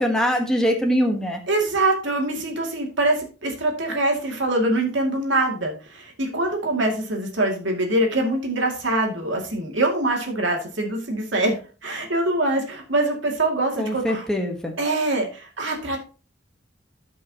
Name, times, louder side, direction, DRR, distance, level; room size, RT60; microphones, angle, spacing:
voice 1, 0.0-1.4 13.8-14.7, equal, 5° left, 1 dB, 1.2 m, -22 dB
voice 2, 1.5-14.2 14.8-16.0, right 2 dB, 75° right, 1 dB, 2.4 m, -24 dB
14.0 x 5.4 x 2.9 m, 0.36 s
head